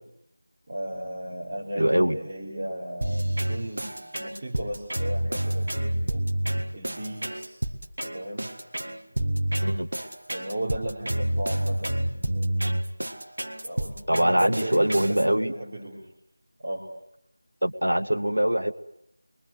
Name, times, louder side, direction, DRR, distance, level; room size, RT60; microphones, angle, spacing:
voice 1, 0.7-6.2 6.7-7.6 8.0-8.5 10.3-12.6 13.6-16.1 16.6-16.8, right 1 dB, 25° right, -4 dB, 3.4 m, -35 dB
voice 2, 1.8-2.2 9.6-9.9 14.1-15.5 17.6-18.7, equal, 80° right, 10 dB, 1.7 m, -23 dB
sound 1, 3.0-15.2, right 1 dB, 55° right, 1.9 m, -28 dB
29.5 x 23.0 x 8.2 m, 0.72 s
figure-of-eight pair, 170°, 0 cm